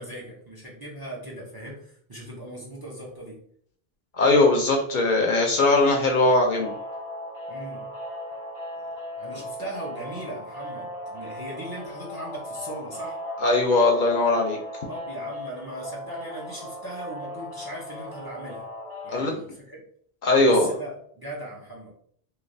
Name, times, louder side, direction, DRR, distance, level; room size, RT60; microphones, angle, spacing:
voice 1, 0.0-3.4 7.5-7.9 8.8-13.2 14.9-18.7 19.0-19.8 20.4-21.9, right 1 dB, 30° right, -3 dB, 0.5 m, -39 dB
voice 2, 4.1-6.7 13.4-14.6 19.1-19.4 20.2-20.7, left 2 dB, 60° left, 1 dB, 0.6 m, -20 dB
sound 1, 6.5-19.3, left 1 dB, 80° right, 1.1 m, -37 dB
3.1 x 2.3 x 2.5 m, 0.63 s
omnidirectional pair, 1.0 m